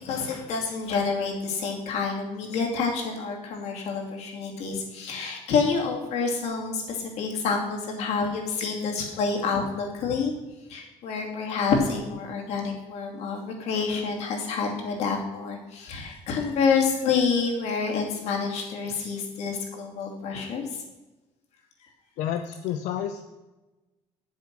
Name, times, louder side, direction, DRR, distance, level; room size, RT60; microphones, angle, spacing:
voice 1, 0.0-10.3 10.7-20.8, left 5 dB, 60° left, 1 dB, 2.6 m, -28 dB
voice 2, 22.2-23.2, left 10 dB, 85° left, 7 dB, 0.7 m, -30 dB
9.8 x 7.5 x 6.0 m, 1.1 s
cardioid pair, 175°, 12 cm